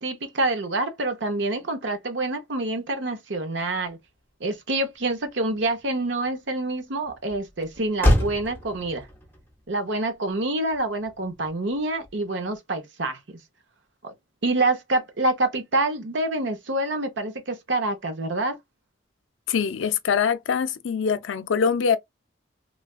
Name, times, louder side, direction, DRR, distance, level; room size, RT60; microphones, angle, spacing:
voice 1, 0.0-4.0 4.4-9.1 9.7-13.2 14.0-14.1 14.4-18.6, right 2 dB, 70° right, 0.8 m, -27 dB
Motor vehicle (road), 3.9-12.6, left 1 dB, 10° left, 0.7 m, -31 dB
voice 2, 19.5-22.0, left 6 dB, 85° left, 0.4 m, -23 dB
3.2 x 2.4 x 2.3 m
head